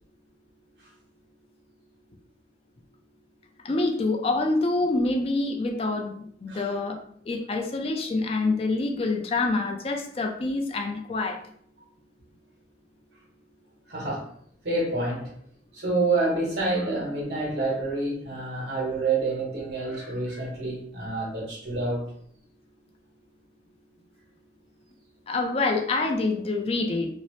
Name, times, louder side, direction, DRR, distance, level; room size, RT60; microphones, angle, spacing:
voice 1, 3.6-7.0 7.3-11.4 25.3-27.1, left 3 dB, 35° left, 3 dB, 0.3 m, -26 dB
voice 2, 13.9-14.3 14.6-15.3 15.7-22.0, right 3 dB, 75° right, -3 dB, 1.1 m, -28 dB
2.6 x 2.0 x 3.0 m, 0.64 s
head